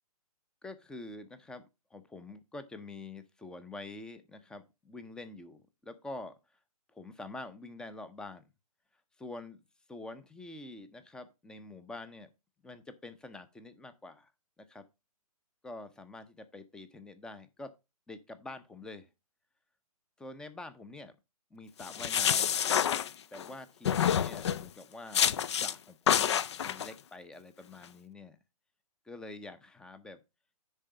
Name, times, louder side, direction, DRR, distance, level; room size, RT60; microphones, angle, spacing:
voice 1, 0.6-6.4 6.9-8.5 9.2-12.3 12.6-14.3 14.6-14.8 15.6-17.7 18.1-19.1 20.2-21.1 21.5-22.5 23.3-28.4 29.0-30.2, left 2 dB, 5° left, 0.6 m, -46 dB
sound 1, 21.8-23.5 23.9-24.7 25.1-25.7 26.1-26.9, left 9 dB, 45° left, 0.5 m, -28 dB
10.0 x 4.0 x 5.1 m
figure-of-eight pair, 130°, 19 cm